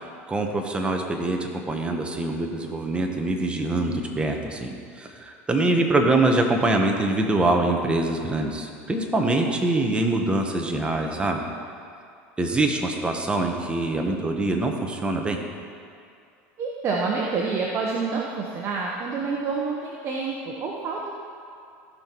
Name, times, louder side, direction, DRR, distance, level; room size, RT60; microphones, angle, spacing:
voice 1, 0.3-11.4 12.4-15.4, right 2 dB, 15° right, 2 dB, 1.3 m, -24 dB
voice 2, 16.6-21.2, right 4 dB, 45° right, -2 dB, 1.2 m, -28 dB
15.5 x 5.9 x 4.7 m, 2.4 s
supercardioid pair, 110°, 7 cm